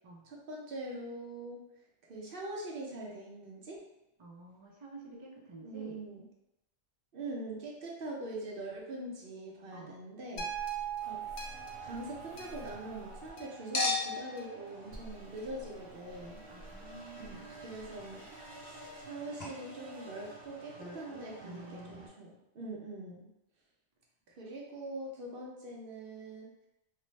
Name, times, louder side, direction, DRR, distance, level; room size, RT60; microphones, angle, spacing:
voice 1, 0.2-1.6 2.1-3.9 5.6-6.2 7.1-10.5 11.1-16.4 17.2-23.3 24.3-26.7, right 2 dB, 60° right, -2 dB, 0.8 m, -43 dB
voice 2, 4.2-6.0 9.7-10.0 16.5-17.6 20.8-22.1, right 2 dB, 35° right, -2 dB, 0.5 m, -50 dB
sound 1, 10.4-14.7 15.4-15.5, right 8 dB, 90° left, 0.9 m, -42 dB
Chink clink, 10.4-13.3 13.7-19.1 19.4-19.5, left 3 dB, 45° left, 0.8 m, -41 dB
sound 2, 11.0-22.1, right 2 dB, 85° right, 1.0 m, -51 dB
3.3 x 2.0 x 3.1 m, 0.89 s
omnidirectional pair, 1.1 m